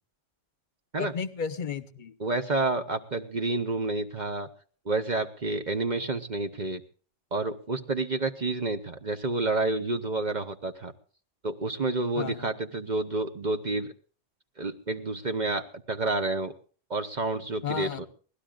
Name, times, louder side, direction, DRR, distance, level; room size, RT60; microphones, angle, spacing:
voice 1, 1.0-2.1 12.1-12.5 17.6-18.1, left 7 dB, 45° left, 13 dB, 1.0 m, -33 dB
voice 2, 2.2-4.5 4.8-6.8 7.3-10.9 11.4-13.9 14.6-16.5 16.9-18.1, right 2 dB, 40° right, 8 dB, 1.0 m, -29 dB
23.0 x 17.0 x 2.4 m, 0.41 s
omnidirectional pair, 1.3 m